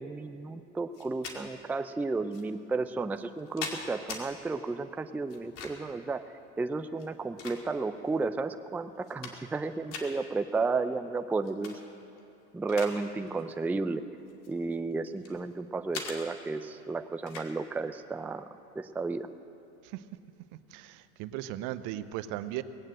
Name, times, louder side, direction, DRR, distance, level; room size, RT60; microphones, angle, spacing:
voice 1, 0.0-6.2 6.6-11.8 12.5-14.1 14.5-18.5 18.8-19.3, right 3 dB, 5° right, 10 dB, 0.4 m, -33 dB
sound 1, 0.9-1.4 2.3-2.4 3.2-4.2 5.3-5.9 6.9-8.0 8.5-8.6 8.9-9.6 9.9-10.1 11.4-11.8 12.2-13.0 13.3-13.5 14.3-15.4 15.9-16.2 17.3-17.5, left 5 dB, 65° left, 2.3 m, -41 dB
voice 2, 20.7-22.6, right 14 dB, 65° right, 13 dB, 0.8 m, -37 dB
19.0 x 8.8 x 7.8 m, 2.6 s
supercardioid pair, 100°, 34 cm